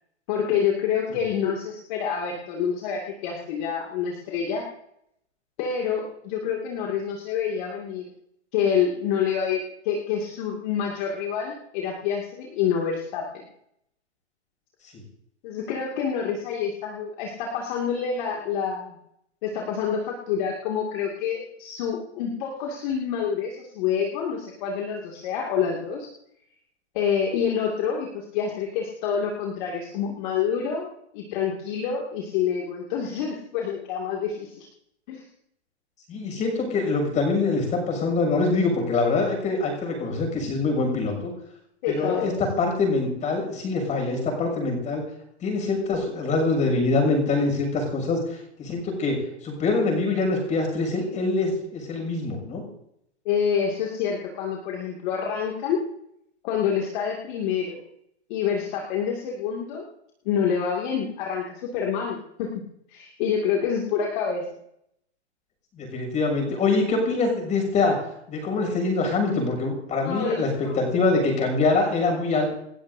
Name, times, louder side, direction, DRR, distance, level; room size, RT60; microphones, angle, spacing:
voice 1, 0.3-4.7 5.6-8.1 8.5-13.3 15.4-18.9 19.4-26.1 26.9-34.7 35.1-35.2 41.8-42.4 53.2-55.8 56.4-57.8 58.3-59.8 60.2-62.6 62.9-64.4 70.0-71.0, left 7 dB, 45° left, -1 dB, 2.5 m, -27 dB
voice 2, 36.1-41.3 41.9-45.0 45.4-52.6 65.7-68.0 68.3-72.5, left 3 dB, 20° left, 2 dB, 6.8 m, -24 dB
29.0 x 12.5 x 2.8 m, 0.76 s
hypercardioid pair, 145°, 34 cm